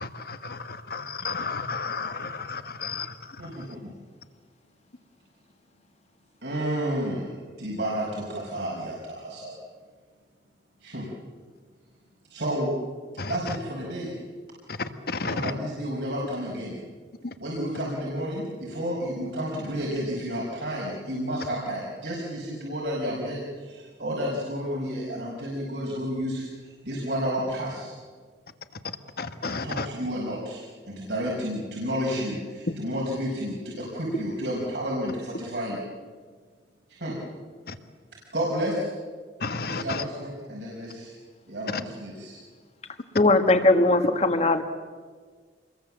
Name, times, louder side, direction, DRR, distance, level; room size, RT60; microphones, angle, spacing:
voice 1, 0.0-3.1 13.2-13.3 15.1-15.5 29.2-29.9 39.4-40.0, left 4 dB, 60° left, 1.4 m, -32 dB
voice 2, 3.4-3.9 6.4-9.6 10.8-11.1 12.3-12.7 13.3-14.2 15.2-16.8 17.4-27.9 29.4-35.8 36.9-37.2 38.3-38.9 39.6-41.1 41.5-42.4, equal, 75° right, 5.2 m, -31 dB
voice 3, 43.2-44.6, left 2 dB, 40° left, 1.7 m, -19 dB
26.5 x 21.5 x 7.5 m
head